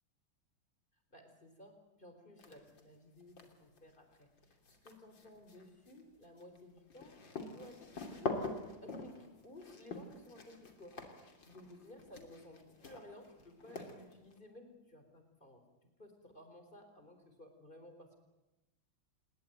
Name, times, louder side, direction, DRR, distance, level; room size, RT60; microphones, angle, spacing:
voice 1, 1.1-4.3 4.8-8.5 8.8-11.0 11.4-15.6 16.0-18.1, left 1 dB, 25° left, 6 dB, 4.4 m, -56 dB
sound 1, 2.4-2.8 3.2-14.4, left 3 dB, 60° left, 3.7 m, -45 dB
27.5 x 21.0 x 9.3 m, 1.0 s
omnidirectional pair, 2.3 m